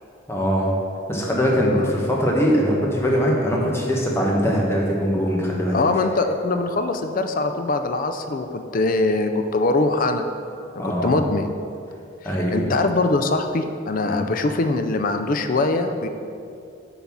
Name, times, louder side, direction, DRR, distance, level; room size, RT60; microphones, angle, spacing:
voice 1, 0.3-0.7 1.1-5.8 10.8-11.1 12.2-12.7 14.1-14.2, equal, 10° left, -3 dB, 1.0 m, -21 dB
voice 2, 5.7-10.2 10.8-11.5 12.2-16.1, left 2 dB, 40° left, 7 dB, 0.4 m, -22 dB
7.0 x 4.0 x 6.0 m, 2.5 s
head